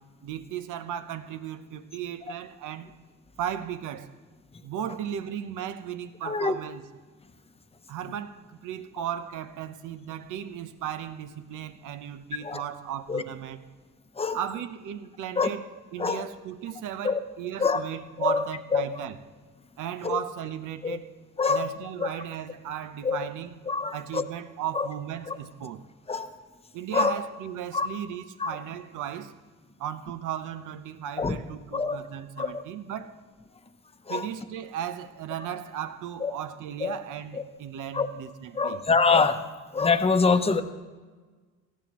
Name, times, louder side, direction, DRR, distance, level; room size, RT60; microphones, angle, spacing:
voice 1, 0.2-2.9 3.4-4.1 4.6-6.9 7.9-13.6 14.3-15.6 15.9-19.2 19.8-21.1 21.5-23.5 23.9-25.8 26.7-29.3 29.8-33.2 34.1-38.8, right 10 dB, 85° right, 0.8 m, -36 dB
voice 2, 6.2-6.6 12.4-12.6 13.1-13.2 14.2-14.4 15.4-15.5 16.0-16.2 17.0-17.2 17.6-17.8 18.2-18.5 18.7-18.9 20.0-20.2 20.8-21.0 21.4-21.7 22.0-22.1 23.0-23.2 23.7-24.2 24.7-24.9 25.3-25.4 26.1-26.3 26.9-27.2 27.7-27.9 28.4-28.5 31.2-31.4 31.7-32.0 32.4-32.6 34.1-34.3 36.2-36.3 36.8-36.9 37.9-38.1 38.5-39.4 39.7-40.6, left 4 dB, 20° left, 0.8 m, -24 dB
18.5 x 14.5 x 3.1 m
cardioid pair, 90°, 30 cm